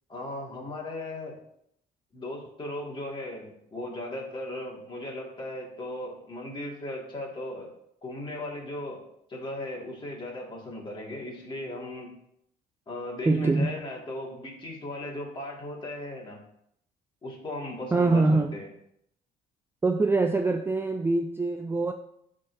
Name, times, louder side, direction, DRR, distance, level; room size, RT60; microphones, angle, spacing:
voice 1, 0.1-1.3 2.1-7.7 8.0-9.0 9.3-12.1 12.9-16.4 17.2-18.7, left 1 dB, 30° left, -2 dB, 2.0 m, -37 dB
voice 2, 13.3-13.7 17.9-18.5 19.8-21.9, right 3 dB, 15° right, 5 dB, 0.3 m, -24 dB
10.5 x 3.9 x 2.7 m, 0.74 s
cardioid pair, 110°, 17 cm